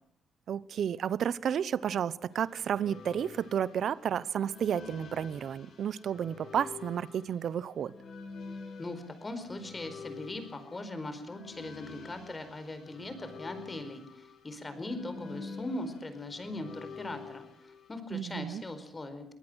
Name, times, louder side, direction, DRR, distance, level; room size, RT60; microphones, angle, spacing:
voice 1, 0.5-7.9 18.1-18.6, right 8 dB, 65° right, 19 dB, 0.9 m, -32 dB
sound 1, 2.3-18.0, left 4 dB, 60° left, 5.2 m, -48 dB
voice 2, 8.8-19.2, left 2 dB, 25° left, 10 dB, 4.5 m, -40 dB
23.0 x 19.0 x 6.4 m, 0.67 s
cardioid pair, 90°, 0 cm